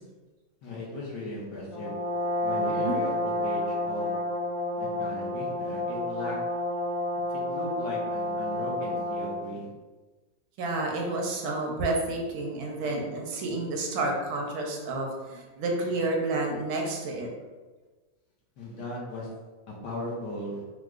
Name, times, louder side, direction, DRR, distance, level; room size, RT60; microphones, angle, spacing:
voice 1, 0.6-1.9 2.4-3.1 3.4-4.1 4.8-6.4 7.3-9.7 12.8-12.9 18.6-19.3 19.7-20.6, left 1 dB, 70° left, -4 dB, 1.1 m, -37 dB
Brass instrument, 1.7-9.5, left 1 dB, 50° left, 1.4 m, -30 dB
voice 2, 2.6-3.0 10.6-17.3, right 2 dB, 80° right, 0 dB, 1.4 m, -30 dB
4.5 x 2.0 x 2.4 m, 1.3 s
omnidirectional pair, 2.2 m